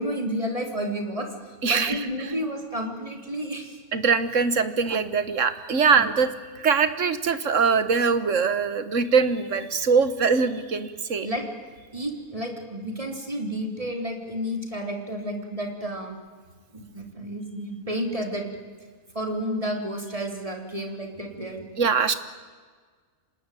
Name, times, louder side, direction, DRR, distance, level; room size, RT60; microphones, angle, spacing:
voice 1, 0.0-1.3 1.7-3.8 5.9-6.1 11.2-11.5 11.9-16.2 16.7-18.5 19.1-21.6, equal, 25° right, 4 dB, 3.6 m, -31 dB
voice 2, 1.6-2.3 3.9-6.3 6.6-11.3 21.8-22.1, right 5 dB, 55° right, 13 dB, 1.7 m, -22 dB
25.5 x 20.0 x 9.1 m, 1.5 s
omnidirectional pair, 1.5 m